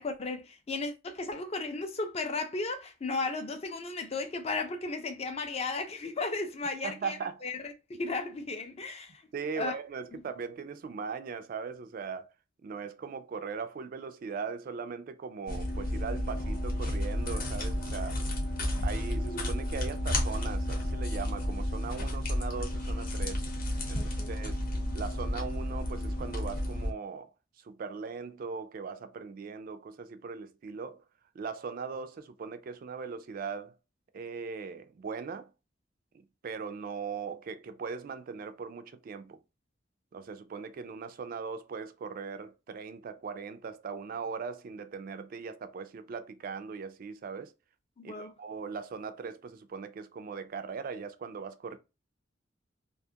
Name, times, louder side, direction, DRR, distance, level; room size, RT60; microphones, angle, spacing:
voice 1, 0.0-7.2 7.4-7.6 7.9-9.1 9.6-9.8 10.1-10.2 23.9-24.3 48.0-48.3, left 3 dB, 35° left, 0.5 m, -35 dB
voice 2, 6.8-7.5 9.3-12.3 12.6-18.2 18.8-23.4 23.9-24.6 24.9-31.0 31.3-33.8 34.1-35.5 36.1-39.4 40.1-47.5 48.0-51.8, right 5 dB, 50° right, 0.3 m, -39 dB
sound 1, 15.5-26.9, left 1 dB, 50° left, 0.8 m, -32 dB
2.4 x 2.3 x 2.7 m
head